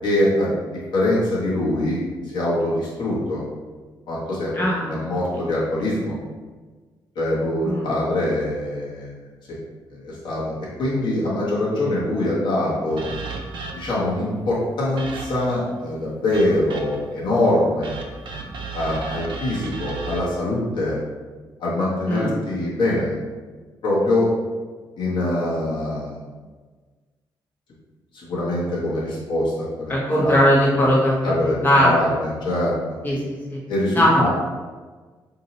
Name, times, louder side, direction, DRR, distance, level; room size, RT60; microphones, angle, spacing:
voice 1, 0.0-0.5 0.9-2.0 2.3-3.4 4.1-6.1 7.1-9.2 9.5-9.6 9.9-13.0 13.7-18.0 18.7-21.0 21.6-23.2 23.8-24.3 25.0-26.2 28.1-30.4 31.2-32.7 33.7-34.3, left 1 dB, 65° left, -7 dB, 1.3 m, -23 dB
voice 2, 4.5-5.0 7.6-7.9 22.0-22.3 29.9-31.9 33.0-33.6 33.9-34.3, equal, 25° left, -6 dB, 1.0 m, -19 dB
sound 1, 13.0-14.1 15.0-15.6 16.3-17.1 17.8-20.2, right 4 dB, 70° right, 0.5 m, -34 dB
2.8 x 2.6 x 4.1 m, 1.4 s
cardioid pair, 125°, 9 cm